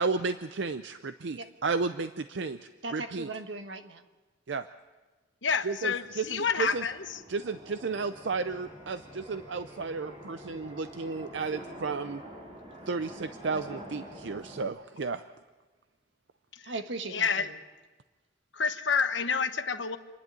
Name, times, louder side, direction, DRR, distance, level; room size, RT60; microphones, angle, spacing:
voice 1, 0.0-3.3 4.5-4.7 5.6-6.9 7.3-12.2 12.9-15.2, right 4 dB, 70° right, 10 dB, 0.6 m, -33 dB
voice 2, 2.8-4.0 16.6-17.5, right 3 dB, 85° right, 7 dB, 1.4 m, -38 dB
voice 3, 5.4-7.2 16.5-16.7 17.1-17.5 18.5-20.0, left 5 dB, 90° left, 9 dB, 1.1 m, -29 dB
sound 1, 5.7-14.6, right 1 dB, 35° right, 5.2 m, -47 dB
Bowed string instrument, 7.8-12.7, left 1 dB, 5° right, 5.2 m, -58 dB
27.0 x 11.0 x 8.9 m, 1.2 s
head